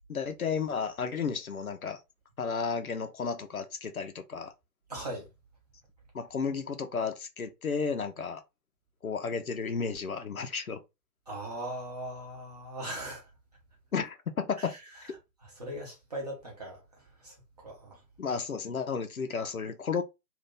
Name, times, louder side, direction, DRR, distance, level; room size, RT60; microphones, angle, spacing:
voice 1, 0.1-2.0 2.4-4.5 6.1-8.4 9.0-10.8 13.9-14.7 18.2-20.0, left 5 dB, 60° left, 0.7 m, -33 dB
voice 2, 4.9-5.3 11.3-13.2 14.6-14.7 15.6-16.8 17.2-17.3 17.6-18.0, right 1 dB, 25° right, 0.8 m, -39 dB
2.7 x 2.5 x 3.6 m
figure-of-eight pair, 150°, 49 cm